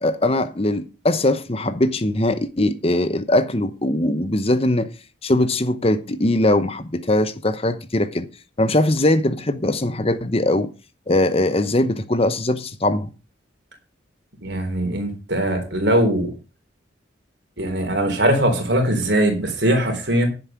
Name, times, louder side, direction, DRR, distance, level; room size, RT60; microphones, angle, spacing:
voice 1, 0.0-4.9 5.2-8.3 8.6-10.7 11.1-13.1, left 1 dB, 30° left, 0.8 m, -21 dB
voice 2, 14.4-16.3 17.6-20.3, right 1 dB, 60° right, 3.8 m, -20 dB
10.5 x 8.0 x 5.9 m
head